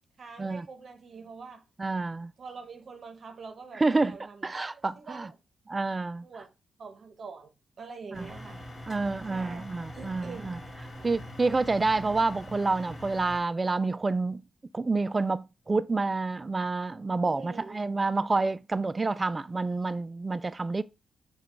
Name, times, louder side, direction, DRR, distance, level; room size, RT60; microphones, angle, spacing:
voice 1, 0.2-1.7 2.4-5.4 6.2-6.5 6.8-8.6 9.3-9.6 9.9-10.5 11.0-11.1 17.2-17.9, right 4 dB, 55° right, 0.7 m, -45 dB
voice 2, 1.8-2.3 3.7-5.3 5.7-6.2 8.1-8.3 8.9-10.6 11.0-14.4 14.7-20.8, right 3 dB, 30° right, 0.3 m, -28 dB
sound 1, 8.1-13.4, left 1 dB, 40° left, 2.0 m, -43 dB
5.0 x 2.3 x 4.4 m
cardioid pair, 65°, 0 cm